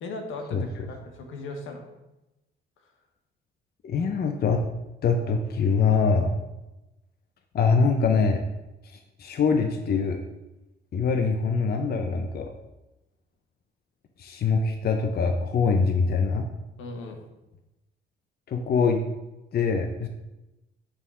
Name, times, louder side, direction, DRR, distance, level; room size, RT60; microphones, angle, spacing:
voice 1, 0.0-1.9 16.8-17.2, left 2 dB, 85° left, 4 dB, 1.3 m, -37 dB
voice 2, 3.8-4.6 5.0-6.4 7.5-8.5 8.8-10.2 10.9-12.5 14.2-16.5 18.5-19.0 19.5-20.1, left 5 dB, 50° left, 4 dB, 0.8 m, -24 dB
8.9 x 3.7 x 5.5 m, 0.98 s
cardioid pair, 90°, 20 cm